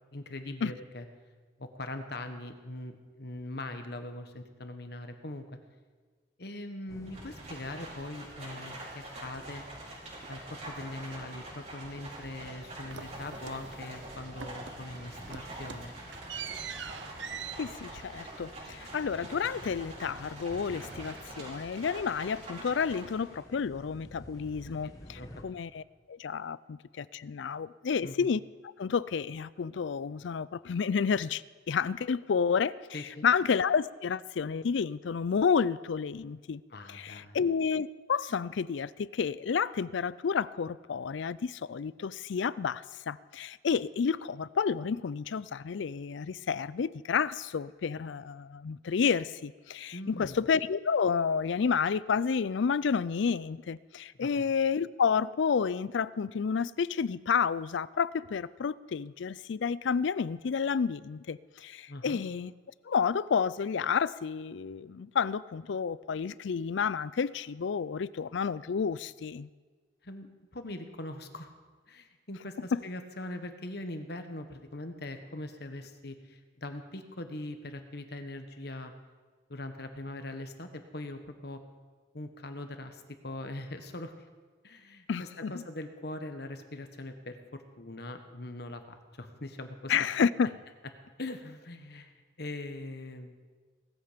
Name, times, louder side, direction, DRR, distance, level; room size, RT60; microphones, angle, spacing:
voice 1, 0.1-1.1 1.6-5.4 6.4-9.6 10.3-15.9 24.8-25.5 28.0-28.3 32.9-33.3 36.7-37.4 49.9-50.4 54.2-54.4 61.9-62.2 70.0-71.5 71.9-78.9 79.5-81.6 82.1-84.1 84.6-90.0 91.2-93.4, left 1 dB, 55° left, 1.4 m, -41 dB
sound 1, 6.9-25.4, equal, 20° left, 1.2 m, -52 dB
Livestock farm animals working animals, 7.1-23.4, right 1 dB, 35° right, 5.1 m, -45 dB
sound 2, 12.9-14.1 14.4-14.9 15.2-20.1 20.4-21.7, right 7 dB, 70° right, 0.8 m, -45 dB
voice 2, 17.6-25.8 26.1-28.4 28.8-36.6 36.9-62.5 62.8-69.5 85.1-85.6 89.9-90.5, left 6 dB, 70° left, 0.4 m, -30 dB
18.5 x 14.0 x 5.2 m
head